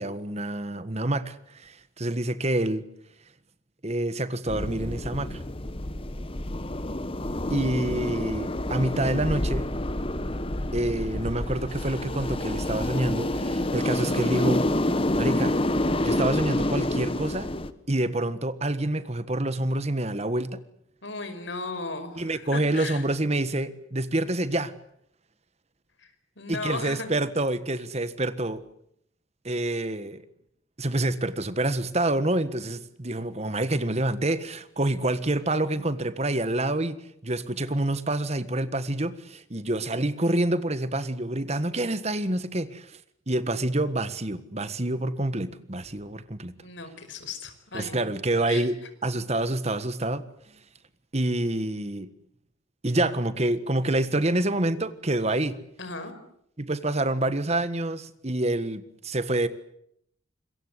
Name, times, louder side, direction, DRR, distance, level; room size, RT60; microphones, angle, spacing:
voice 1, 0.0-2.8 3.8-5.4 7.5-9.6 10.7-14.6 15.2-15.5 16.0-17.5 17.9-20.6 22.2-24.7 26.5-28.6 29.4-30.2 30.8-36.9 37.2-42.9 43.3-46.5 47.7-50.2 51.1-52.1 52.8-55.6 56.6-59.5, right 1 dB, 35° right, 13 dB, 1.5 m, -27 dB
sound 1, 4.5-17.7, left 1 dB, 25° left, 1.3 m, -28 dB
voice 2, 21.0-23.0 26.0-27.1 46.6-48.1 48.5-48.7 55.8-56.1, left 3 dB, 65° left, 9 dB, 5.4 m, -36 dB
26.5 x 22.5 x 8.1 m, 0.71 s
head